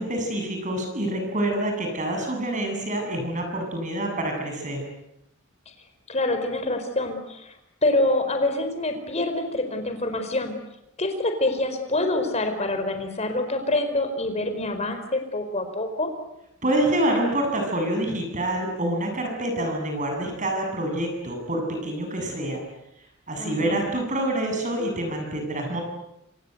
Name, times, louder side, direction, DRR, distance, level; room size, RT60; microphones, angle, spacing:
voice 1, 0.0-4.8 16.6-22.6 23.3-25.8, right 1 dB, 35° right, 3 dB, 7.8 m, -26 dB
voice 2, 6.1-7.5 7.8-10.5 11.0-16.1 23.4-23.8, left 2 dB, 30° left, 7 dB, 4.7 m, -26 dB
27.5 x 27.0 x 8.1 m, 0.84 s
head